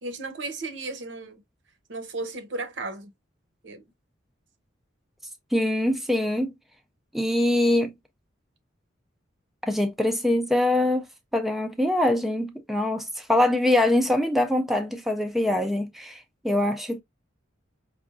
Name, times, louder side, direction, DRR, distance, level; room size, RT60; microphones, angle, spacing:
voice 1, 0.0-1.4 1.9-3.1 3.6-3.8, right 2 dB, 65° right, 0.8 m, -34 dB
voice 2, 5.5-6.5 7.1-7.9 9.6-11.1 11.3-17.0, left 1 dB, ahead, 0.4 m, -23 dB
5.0 x 2.2 x 2.5 m
head